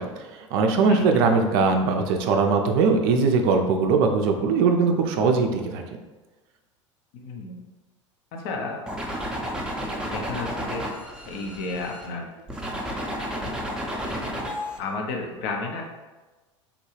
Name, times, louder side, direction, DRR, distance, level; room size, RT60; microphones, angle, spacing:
voice 1, 0.0-5.8, right 4 dB, 50° right, 4 dB, 0.4 m, -21 dB
voice 2, 0.9-1.2 7.1-7.6 8.3-8.8 10.0-10.8 11.2-12.3 14.8-15.8, left 3 dB, 50° left, 2 dB, 0.6 m, -32 dB
sound 1, 8.9-12.1 12.5-14.8, equal, 5° right, 0.6 m, -32 dB
3.5 x 2.2 x 3.1 m, 1.2 s
figure-of-eight pair, 80°, 16 cm